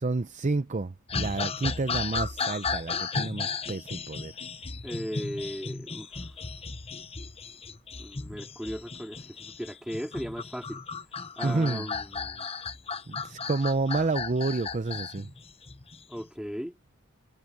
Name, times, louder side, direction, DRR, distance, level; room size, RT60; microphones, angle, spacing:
voice 1, 0.0-4.4 11.4-11.9 13.1-15.3, right 3 dB, 35° right, 0.6 m, -29 dB
sound 1, 1.1-16.2, left 4 dB, 30° left, 1.0 m, -35 dB
voice 2, 4.8-6.3 8.0-10.8 11.4-12.5 16.1-16.8, equal, 5° right, 2.6 m, -37 dB
head